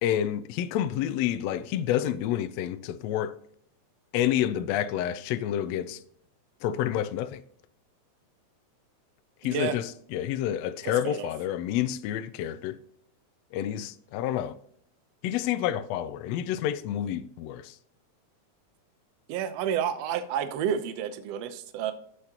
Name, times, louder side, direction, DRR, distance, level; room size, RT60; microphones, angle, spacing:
voice 1, 0.0-3.3 4.1-6.0 6.6-7.4 9.4-12.8 13.5-14.5 15.2-17.7, left 11 dB, 80° left, 1.6 m, -29 dB
voice 2, 9.4-9.8 10.8-11.3 19.3-21.9, right 8 dB, 70° right, 1.7 m, -30 dB
13.5 x 4.9 x 2.8 m
omnidirectional pair, 3.4 m